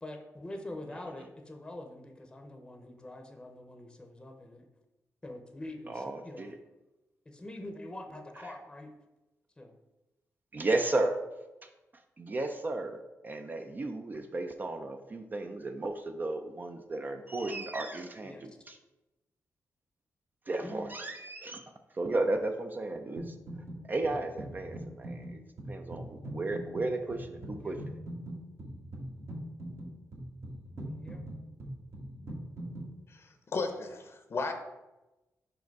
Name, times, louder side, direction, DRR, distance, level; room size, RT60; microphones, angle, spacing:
voice 1, 0.0-4.7 5.2-6.5 7.3-8.9 9.6-9.7 18.2-18.6 20.6-20.9 27.6-27.7 30.8-31.2, left 1 dB, 15° left, 4 dB, 0.7 m, -44 dB
voice 2, 5.9-6.6 8.4-8.5 10.5-11.2 11.6-11.7 12.2-13.0 13.2-18.8 20.5-21.7 21.9-23.3 23.9-25.4 25.7-28.0, right 2 dB, 30° right, 6 dB, 0.4 m, -34 dB
sound 1, 23.2-23.8 24.0-32.9, right 1 dB, 50° right, 1.2 m, -42 dB
voice 3, 33.1-34.5, left 3 dB, 45° left, 6 dB, 0.7 m, -35 dB
5.1 x 4.9 x 4.6 m, 1.0 s
wide cardioid pair, 120°, 6 cm